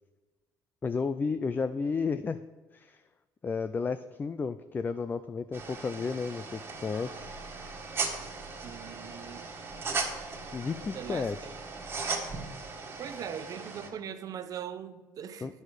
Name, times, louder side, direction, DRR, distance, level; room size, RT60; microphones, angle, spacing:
voice 1, 0.8-2.4 2.7-3.0 3.4-7.3 10.5-11.4 15.4-15.6, left 5 dB, 25° left, 12 dB, 0.3 m, -32 dB
sound 1, 5.5-13.9, right 4 dB, 30° right, 1.7 m, -38 dB
Growling, 6.9-12.7, right 1 dB, 65° left, 2.1 m, -53 dB
voice 2, 8.6-9.5 10.9-11.5 13.0-15.6, right 8 dB, 50° right, 11 dB, 0.7 m, -41 dB
9.2 x 6.4 x 5.0 m, 1.2 s
cardioid pair, 100°, 8 cm